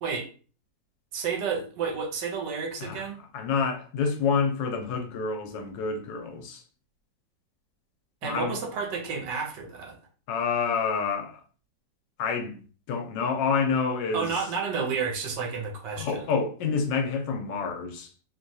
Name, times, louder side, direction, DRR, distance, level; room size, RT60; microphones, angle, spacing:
voice 1, 1.1-3.2 8.2-10.0 14.1-16.2, right 5 dB, 75° right, 1.3 m, -31 dB
voice 2, 3.3-6.6 8.2-8.6 10.3-11.4 12.2-12.6 12.9-14.4 16.0-18.1, left 5 dB, 80° left, 1.2 m, -28 dB
3.1 x 2.3 x 2.5 m
omnidirectional pair, 2.0 m